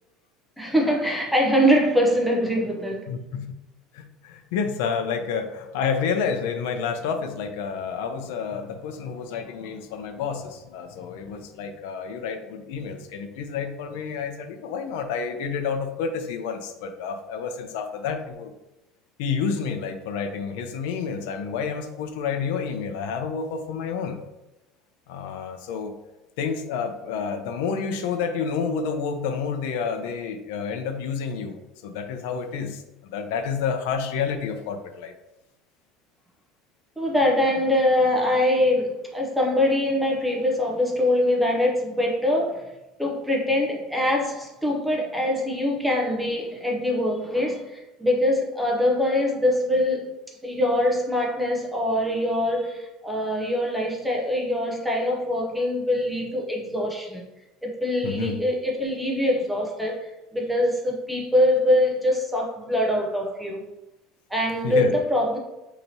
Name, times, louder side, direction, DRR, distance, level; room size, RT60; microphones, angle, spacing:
voice 1, 0.6-3.0 37.0-42.7 43.0-50.2 50.4-57.2 57.6-63.6 64.3-65.4, left 1 dB, ahead, -1 dB, 0.5 m, -23 dB
voice 2, 3.1-3.4 3.9-18.5 19.2-24.2 25.1-25.9 26.4-31.6 31.8-32.8 33.1-35.1 58.0-58.4 64.6-64.9, left 6 dB, 80° left, 7 dB, 0.5 m, -29 dB
4.5 x 2.8 x 2.7 m, 0.95 s
cardioid pair, 175°, 0 cm